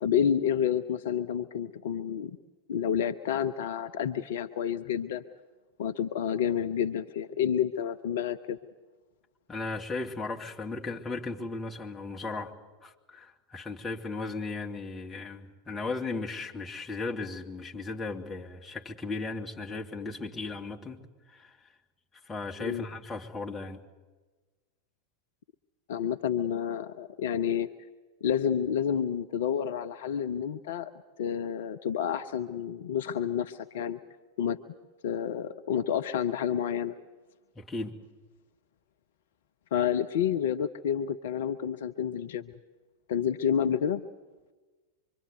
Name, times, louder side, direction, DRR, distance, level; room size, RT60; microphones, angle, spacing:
voice 1, 0.0-2.4 2.7-5.2 5.8-8.6 22.6-22.9 25.9-27.7 28.2-30.9 31.2-34.0 34.4-34.6 35.0-36.9 39.7-42.5 43.1-44.0, left 8 dB, 55° left, 9 dB, 0.8 m, -29 dB
voice 2, 9.5-12.6 12.8-21.0 21.3-21.7 22.2-23.8 37.6-38.0, left 3 dB, 15° left, 0 dB, 2.4 m, -36 dB
25.0 x 24.0 x 8.0 m, 1.3 s
figure-of-eight pair, 90°, 0 cm